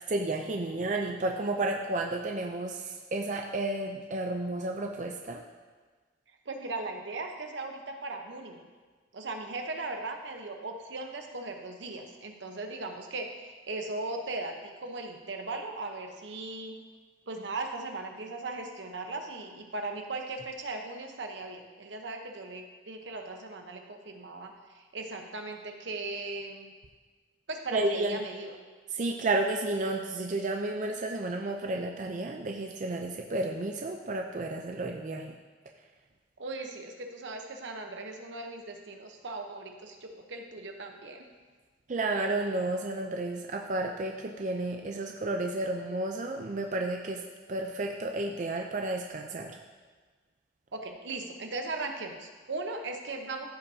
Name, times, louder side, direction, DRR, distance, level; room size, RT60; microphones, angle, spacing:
voice 1, 0.0-5.4 27.7-28.2 29.0-35.4 41.9-47.2 47.5-49.6, right 2 dB, 40° right, 2 dB, 0.4 m, -32 dB
voice 2, 6.5-8.7 9.1-16.8 17.3-26.7 27.5-28.6 36.4-41.3 50.7-53.5, right 2 dB, 80° right, 4 dB, 0.9 m, -38 dB
14.0 x 5.5 x 2.7 m, 1.4 s
head